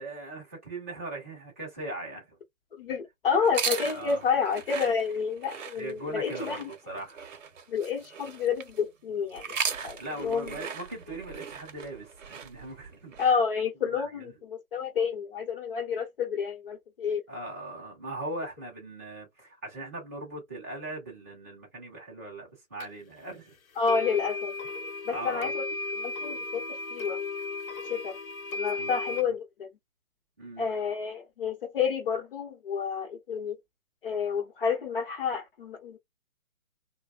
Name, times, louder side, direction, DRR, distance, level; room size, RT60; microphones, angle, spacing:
voice 1, 0.0-2.4 3.9-4.2 5.8-7.2 10.0-13.3 13.9-14.3 17.3-23.5 25.1-25.5 28.8-29.3 30.4-30.7, right 2 dB, 10° right, 0.5 m, -40 dB
voice 2, 2.8-6.7 7.7-9.4 9.8-10.6 13.2-17.2 23.8-24.5 25.1-25.6 26.0-26.6 26.9-27.2 27.9-28.2 28.5-29.7 30.6-33.6 34.0-36.0, left 6 dB, 40° left, 0.8 m, -29 dB
sound 1, 3.4-8.8 9.3-13.3, right 6 dB, 65° right, 0.7 m, -37 dB
sound 2, 22.8-22.9 23.8-29.2, left 3 dB, 75° left, 0.8 m, -35 dB
2.7 x 2.1 x 2.3 m
figure-of-eight pair, 145°, 42 cm